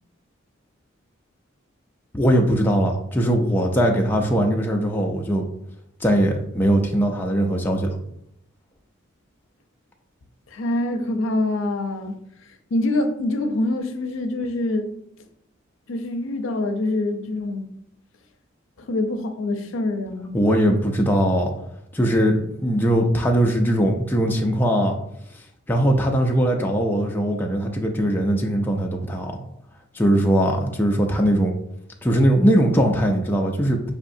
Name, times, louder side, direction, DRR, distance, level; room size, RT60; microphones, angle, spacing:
voice 1, 2.1-5.4 6.0-7.9 20.3-21.5 21.9-25.0 25.7-29.3 29.9-31.5 32.0-33.9, equal, 10° left, 1 dB, 0.3 m, -20 dB
voice 2, 10.5-12.2 12.7-14.9 15.9-17.7 18.9-20.4, left 2 dB, 75° left, 6 dB, 0.5 m, -25 dB
5.6 x 2.7 x 2.6 m, 0.77 s
head